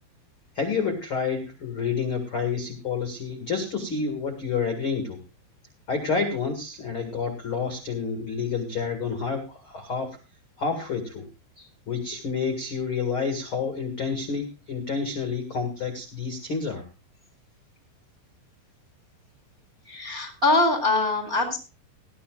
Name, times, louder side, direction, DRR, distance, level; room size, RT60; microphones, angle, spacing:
voice 1, 0.5-5.2 5.9-10.2 10.6-11.2 11.9-16.8, left 5 dB, 60° left, 4 dB, 1.3 m, -29 dB
voice 2, 19.9-21.6, left 2 dB, 30° right, 4 dB, 1.8 m, -23 dB
18.5 x 13.0 x 2.4 m, 0.32 s
omnidirectional pair, 5.8 m